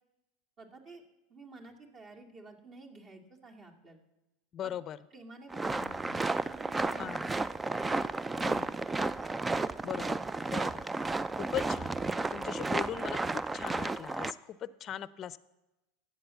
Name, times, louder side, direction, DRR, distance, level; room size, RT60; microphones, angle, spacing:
voice 1, 0.6-1.0 1.3-4.0 4.6-4.7 5.1-7.2 8.3-8.5 8.9-9.0, right 2 dB, 40° right, 1 dB, 2.5 m, -51 dB
voice 2, 4.5-5.0 7.0-7.2 8.4-8.7 9.8-10.2 10.5-10.9 11.4-12.0 12.3-15.4, left 10 dB, 40° left, 16 dB, 0.6 m, -39 dB
sound 1, 5.5-14.3, right 3 dB, 15° right, 0.4 m, -33 dB
13.0 x 8.7 x 7.1 m, 1.0 s
hypercardioid pair, 95°, 0 cm